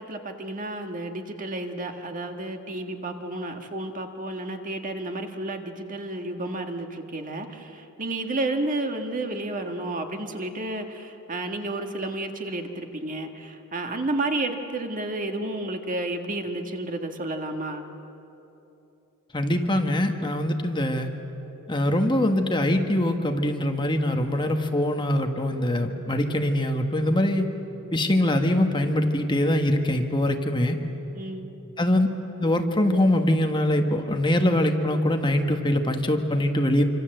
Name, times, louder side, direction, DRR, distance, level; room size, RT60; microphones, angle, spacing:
voice 1, 0.0-17.9 31.1-31.5, right 2 dB, 40° right, 5 dB, 1.7 m, -31 dB
voice 2, 19.3-21.1 21.7-27.5 27.9-30.8 31.8-32.1 32.4-36.8, left 1 dB, 20° left, 4 dB, 1.5 m, -23 dB
26.5 x 25.5 x 7.9 m, 3.0 s
head